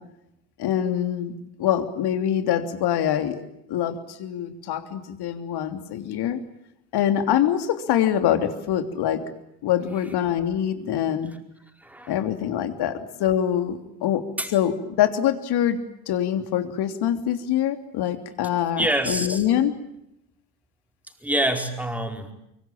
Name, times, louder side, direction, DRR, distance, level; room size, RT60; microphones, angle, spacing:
voice 1, 0.6-1.3 1.6-3.4 3.7-6.4 6.9-9.2 9.6-11.3 12.1-14.2 14.5-15.8 16.1-19.7, left 10 dB, 50° left, 8 dB, 3.3 m, -24 dB
voice 2, 11.8-12.1 14.4-14.5 18.8-19.4 21.2-22.3, right 1 dB, 5° right, 4 dB, 4.9 m, -26 dB
24.5 x 24.5 x 8.8 m, 0.81 s
hypercardioid pair, 75°, 49 cm